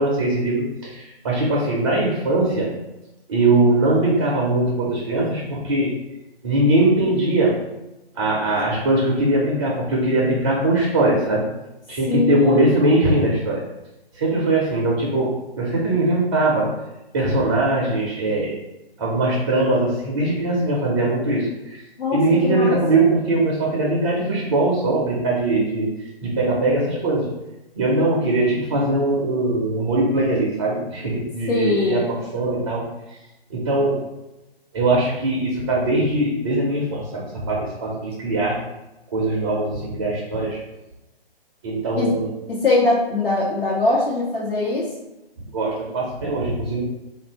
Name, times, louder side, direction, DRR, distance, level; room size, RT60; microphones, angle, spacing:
voice 1, 0.0-2.7 3.3-5.9 6.4-7.6 8.1-11.5 11.9-13.6 14.1-16.7 17.1-18.6 19.0-21.8 22.1-25.9 26.2-27.3 27.8-32.8 33.5-34.0 34.7-38.6 39.1-40.6 41.6-42.3 45.5-46.9, right 2 dB, 25° right, -3 dB, 0.5 m, -21 dB
voice 2, 12.1-12.8 22.0-22.8 31.5-32.1 41.9-42.1 42.5-44.9, left 2 dB, 65° left, -8 dB, 1.2 m, -21 dB
2.7 x 2.5 x 4.3 m, 0.97 s
figure-of-eight pair, 140°, 31 cm